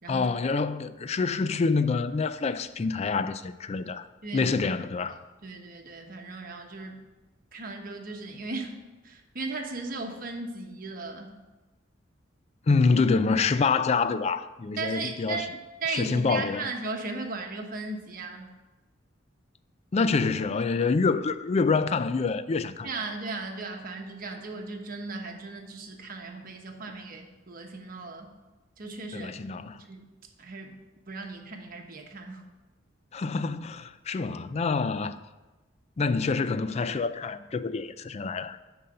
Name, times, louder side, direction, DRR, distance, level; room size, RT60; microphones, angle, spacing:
voice 1, 0.1-4.1 4.3-5.2 12.7-15.4 15.9-16.7 19.9-22.9 29.1-29.8 33.1-35.2 36.0-38.6, left 4 dB, 35° left, 0.4 m, -26 dB
voice 2, 4.2-4.6 5.1-7.0 7.5-8.8 9.0-11.3 14.8-15.5 15.8-18.5 22.8-28.3 28.8-29.3 29.9-30.1 30.4-30.8 31.1-32.4, right 3 dB, 50° right, 1.1 m, -37 dB
9.9 x 4.0 x 6.5 m
head